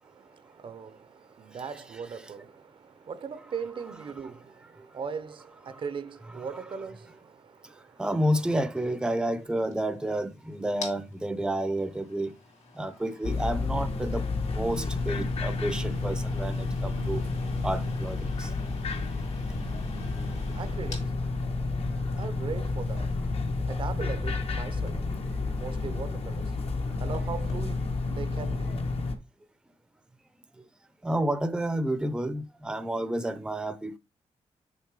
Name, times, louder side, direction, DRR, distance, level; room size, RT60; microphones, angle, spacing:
voice 1, 0.0-8.0 20.2-29.2, right 6 dB, 45° right, 0.6 m, -40 dB
voice 2, 8.0-12.3 12.8-17.2 17.6-18.5 31.0-34.0, right 1 dB, 5° right, 0.6 m, -30 dB
sound 1, 9.0-27.7, left 3 dB, 80° left, 3.1 m, -49 dB
sound 2, 13.2-29.1, left 3 dB, 60° left, 1.2 m, -30 dB
6.7 x 5.3 x 4.7 m
wide cardioid pair, 155°, 12 cm